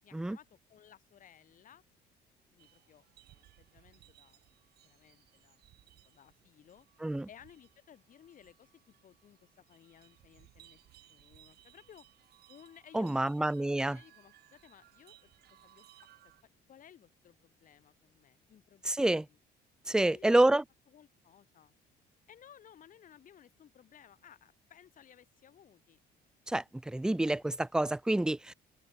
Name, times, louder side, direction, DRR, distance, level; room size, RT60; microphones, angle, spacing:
voice 1, 0.0-1.8 2.5-4.4 4.8-5.6 6.0-6.9 7.3-12.1 12.5-15.3 15.6-15.8 16.4-19.4 20.1-20.5 20.9-21.7 22.3-26.0, left 9 dB, 50° left, 6.6 m, -59 dB
sound 1, 2.6-16.4, right 14 dB, 75° right, 5.2 m, -63 dB
voice 2, 12.9-14.0 18.9-19.2 19.9-20.6 26.5-28.5, right 1 dB, 5° right, 0.4 m, -28 dB
open air
cardioid pair, 110°, 17 cm